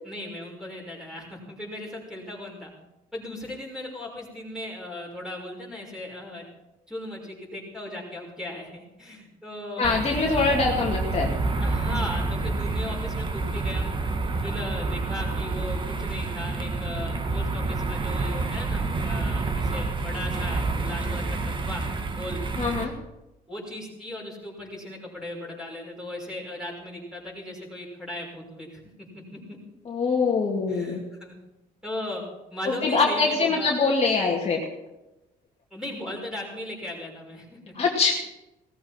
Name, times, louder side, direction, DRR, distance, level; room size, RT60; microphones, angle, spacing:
voice 1, 0.0-2.7 3.1-6.5 6.9-9.8 10.3-10.6 11.6-13.9 14.4-21.8 22.1-22.4 23.5-29.6 30.7-31.3 31.8-32.2 32.5-33.7 35.7-37.7, left 1 dB, 5° right, -2 dB, 5.9 m, -37 dB
voice 2, 9.8-11.3 22.6-22.9 29.9-31.0 32.8-34.6 37.8-38.1, left 4 dB, 35° left, -1 dB, 2.3 m, -23 dB
sound 1, 9.8-22.8, right 3 dB, 30° right, 1.6 m, -28 dB
17.5 x 14.5 x 4.5 m, 0.95 s
cardioid pair, 110°, 17 cm